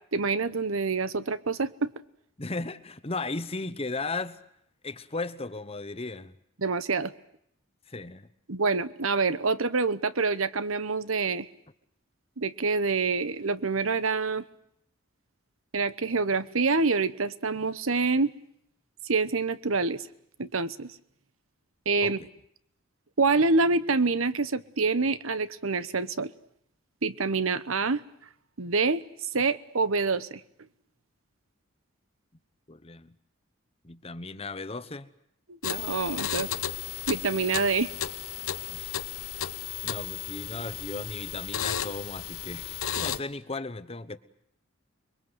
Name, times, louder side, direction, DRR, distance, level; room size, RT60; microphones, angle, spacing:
voice 1, 0.1-1.9 6.6-7.1 8.5-11.5 12.4-14.4 15.7-18.3 19.0-20.1 20.4-20.9 21.9-22.2 23.2-26.3 27.0-28.0 28.6-29.0 29.3-30.4 35.5-36.5 37.1-37.9, right 4 dB, 80° right, 15 dB, 1.1 m, -26 dB
voice 2, 2.4-4.4 4.8-6.3 7.9-8.3 22.0-22.3 32.7-33.1 33.8-35.1 38.7-39.0 39.8-44.2, left 3 dB, 30° left, 13 dB, 1.1 m, -36 dB
sound 1, 35.6-43.2, left 10 dB, 90° left, 1.1 m, -34 dB
29.5 x 22.0 x 8.0 m, 0.72 s
head